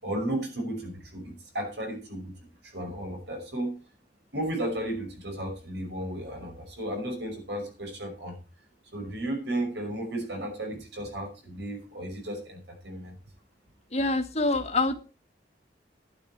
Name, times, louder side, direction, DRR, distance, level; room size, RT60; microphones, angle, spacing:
voice 1, 0.0-2.3 2.6-3.7 4.3-8.4 8.9-13.1, right 1 dB, 75° right, 3 dB, 5.7 m, -34 dB
voice 2, 13.9-14.9, left 2 dB, 40° left, 6 dB, 1.5 m, -25 dB
12.0 x 10.5 x 4.7 m, 0.34 s
head